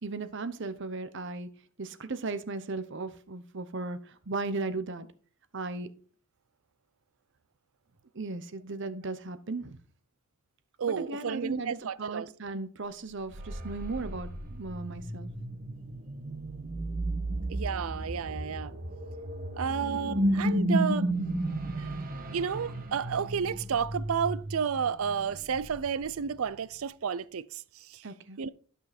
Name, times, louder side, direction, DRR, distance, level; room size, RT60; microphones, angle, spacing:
voice 1, 0.0-1.5 1.8-5.1 5.5-5.9 8.1-9.8 10.8-15.3 28.0-28.4, right 3 dB, 60° right, 0.9 m, -36 dB
voice 2, 10.8-12.3 17.5-18.8 19.6-21.1 21.7-21.9 22.3-28.0 28.4-28.5, right 6 dB, 75° right, 0.5 m, -32 dB
sound 1, 13.1-26.6, right 1 dB, 40° right, 1.3 m, -33 dB
12.0 x 5.6 x 4.2 m
head